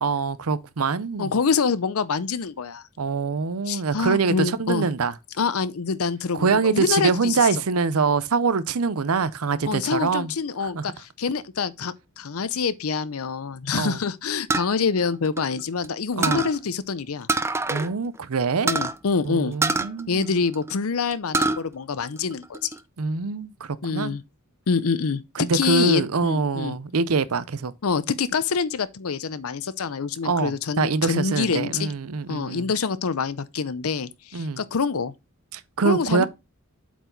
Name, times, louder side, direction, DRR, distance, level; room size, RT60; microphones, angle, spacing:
voice 1, 0.0-1.3 3.0-5.1 6.3-10.3 10.6-10.9 13.7-14.0 16.2-16.5 17.7-18.7 19.2-20.4 23.0-24.1 25.4-27.7 30.2-32.7 34.3-34.6 35.5-36.3, right 4 dB, 80° right, 0.6 m, -24 dB
voice 2, 1.2-2.8 3.7-4.9 5.4-7.5 9.7-17.3 18.6-19.6 20.1-22.7 23.8-24.2 24.7-26.8 27.8-31.9 32.3-35.1 35.8-36.3, left 5 dB, 75° left, 0.6 m, -26 dB
sound 1, 14.5-15.9 16.2-16.6 17.3-17.9 18.2-18.3 18.7-18.9 19.6-20.7 21.1-21.6 22.0-22.8, right 3 dB, 10° right, 0.4 m, -25 dB
8.0 x 4.7 x 3.9 m
head